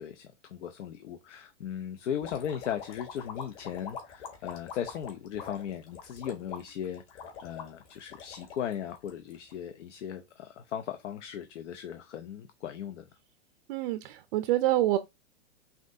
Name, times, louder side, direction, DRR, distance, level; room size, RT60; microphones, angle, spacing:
voice 1, 0.0-13.1, left 9 dB, 80° left, 0.8 m, -37 dB
sound 1, 2.2-9.5, left 6 dB, 45° left, 1.7 m, -44 dB
voice 2, 13.7-15.0, right 15 dB, 50° right, 0.5 m, -26 dB
5.9 x 2.6 x 2.7 m
hypercardioid pair, 140°, 36 cm